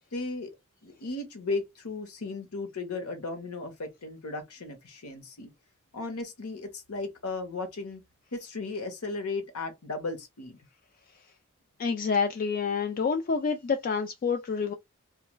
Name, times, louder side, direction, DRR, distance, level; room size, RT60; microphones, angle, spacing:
voice 1, 0.1-0.5 0.8-5.5 5.9-8.0 8.3-10.6, left 3 dB, 85° left, 1.0 m, -35 dB
voice 2, 11.8-14.7, left 5 dB, 40° left, 0.3 m, -28 dB
3.1 x 2.4 x 2.2 m
head